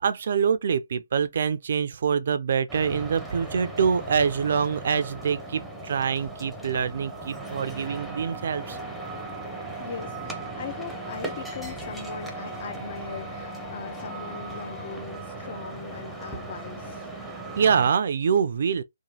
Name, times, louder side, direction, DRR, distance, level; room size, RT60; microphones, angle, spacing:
voice 1, 0.0-8.8 17.6-18.8, right 6 dB, 55° right, 0.3 m, -25 dB
sound 1, 2.7-17.9, right 2 dB, ahead, 0.6 m, -38 dB
sound 2, 7.8-15.0, equal, 30° left, 1.3 m, -42 dB
voice 2, 9.8-17.1, left 6 dB, 50° left, 0.5 m, -40 dB
3.0 x 2.2 x 2.8 m
figure-of-eight pair, 140°, 0 cm